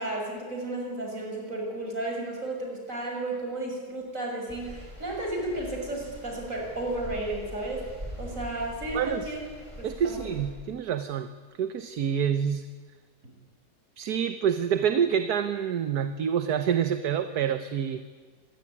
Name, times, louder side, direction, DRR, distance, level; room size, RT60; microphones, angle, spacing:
voice 1, 0.0-7.8 8.2-9.4 9.8-10.3, right 2 dB, 55° right, 0 dB, 7.1 m, -33 dB
sound 1, 4.5-10.5, equal, 20° right, 5.7 m, -43 dB
voice 2, 8.9-9.3 9.8-11.3 11.6-12.6 14.0-18.0, right 8 dB, 75° right, 10 dB, 1.6 m, -27 dB
26.0 x 21.5 x 9.9 m, 1.5 s
omnidirectional pair, 1.7 m